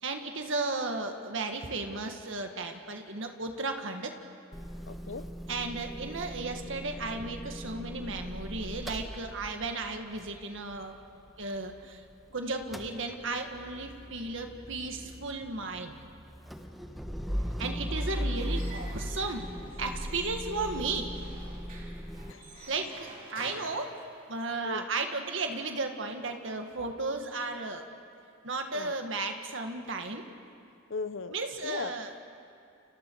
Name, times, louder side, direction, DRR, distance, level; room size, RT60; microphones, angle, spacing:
voice 1, 0.0-4.1 5.5-10.9 11.4-12.0 12.3-16.0 17.6-19.5 19.8-21.1 22.7-24.0 24.3-27.8 28.4-30.3 31.3-32.2, right 3 dB, 60° right, 4 dB, 1.9 m, -34 dB
Motor vehicle (road) / Engine starting / Idling, 4.5-12.2 12.5-22.3, equal, ahead, 1.2 m, -39 dB
voice 2, 4.9-5.3 17.7-18.1 22.3-22.7 24.6-24.9 28.7-28.9 30.9-31.4 31.6-31.9, left 4 dB, 60° left, 11 dB, 0.9 m, -38 dB
Squeak / Wood, 17.7-24.6, right 2 dB, 40° right, 3.9 m, -50 dB
30.0 x 29.0 x 4.8 m, 2.5 s
head